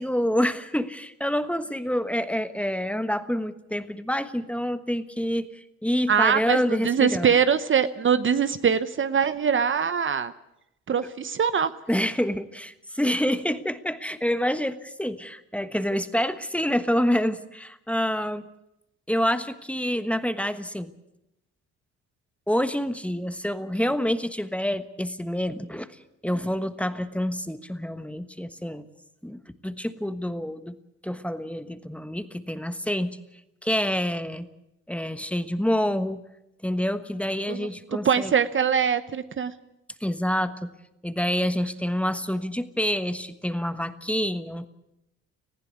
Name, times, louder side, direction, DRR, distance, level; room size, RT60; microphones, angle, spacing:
voice 1, 0.0-5.5 5.8-7.3 11.9-18.4 19.1-20.9 22.5-25.9 26.2-28.8 29.2-30.7 31.0-33.2 33.6-34.5 34.9-36.2 36.6-38.3 40.0-40.7 41.0-44.7, equal, 5° left, 11 dB, 1.3 m, -27 dB
voice 2, 6.1-10.3 10.9-11.7 37.5-39.5, right 7 dB, 40° right, 12 dB, 0.9 m, -23 dB
19.5 x 15.0 x 9.5 m, 0.87 s
cardioid pair, 90°, 30 cm